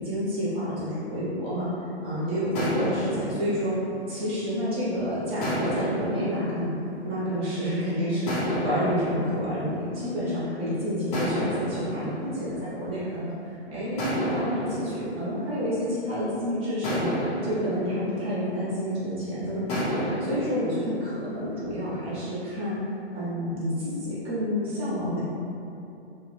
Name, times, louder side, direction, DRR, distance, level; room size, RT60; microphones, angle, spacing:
voice 1, 0.0-1.7 2.0-3.8 4.1-6.7 7.0-22.8 23.1-25.2, equal, 15° right, -10 dB, 0.8 m, -29 dB
sound 1, 2.5-4.8 5.4-7.7 8.3-10.5 11.1-13.4 14.0-16.2 16.8-19.1 19.7-21.5, equal, 35° left, 0.7 m, -32 dB
3.0 x 2.2 x 3.1 m, 2.8 s
hypercardioid pair, 140°, 34 cm